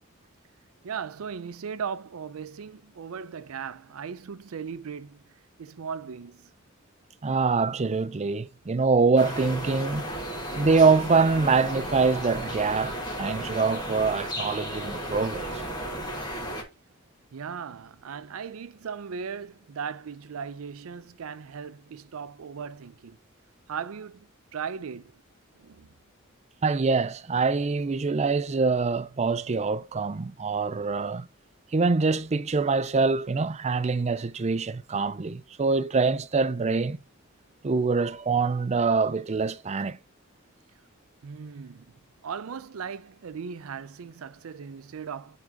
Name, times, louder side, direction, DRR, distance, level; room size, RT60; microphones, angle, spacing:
voice 1, 0.8-5.2 5.6-6.5 17.3-23.2 23.7-25.2 25.6-25.9 41.2-41.9 42.2-45.4, right 6 dB, 85° right, 0.5 m, -37 dB
voice 2, 7.2-10.0 10.6-15.6 26.6-31.3 31.7-37.0 37.6-40.0, right 4 dB, 30° right, 0.5 m, -24 dB
sound 1, 9.2-16.6, equal, 20° left, 2.0 m, -34 dB
9.1 x 3.8 x 3.5 m
head